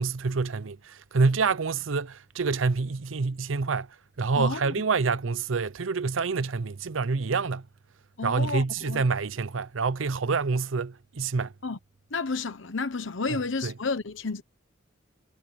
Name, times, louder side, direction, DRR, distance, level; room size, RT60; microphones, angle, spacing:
voice 1, 0.0-7.7 8.2-11.5 13.3-13.7, right 4 dB, 85° right, 0.7 m, -27 dB
voice 2, 4.4-4.7 8.2-9.0 11.6-11.8 12.1-14.4, left 4 dB, 75° left, 1.1 m, -31 dB
head